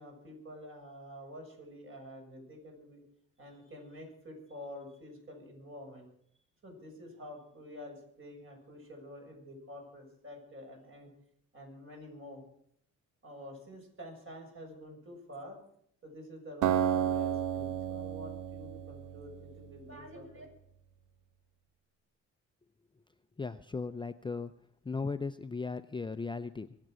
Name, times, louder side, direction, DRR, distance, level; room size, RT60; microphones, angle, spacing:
voice 1, 0.0-3.0 3.4-6.1 6.6-11.1 11.5-12.4 13.2-15.6 16.0-20.5, equal, 45° right, 1 dB, 7.2 m, -48 dB
Acoustic guitar, 16.6-19.8, right 10 dB, 80° right, 1.1 m, -32 dB
voice 2, 23.4-24.5 24.8-26.8, left 4 dB, 15° left, 10 dB, 0.5 m, -37 dB
24.5 x 8.2 x 6.3 m, 0.68 s
cardioid pair, 90°, 30 cm